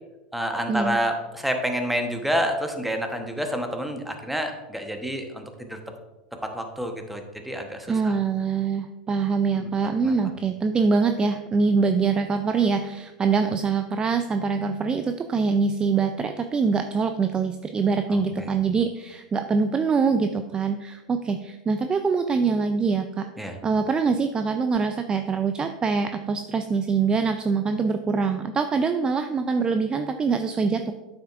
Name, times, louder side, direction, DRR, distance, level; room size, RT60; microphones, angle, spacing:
voice 1, 0.3-5.8 6.5-8.2 9.5-9.7 10.0-10.1 18.1-18.6 23.4-23.6, equal, 5° right, 4 dB, 1.1 m, -29 dB
voice 2, 7.9-30.9, right 5 dB, 20° right, 8 dB, 0.4 m, -24 dB
9.0 x 7.0 x 2.5 m, 1.1 s
hypercardioid pair, 95°, 4 cm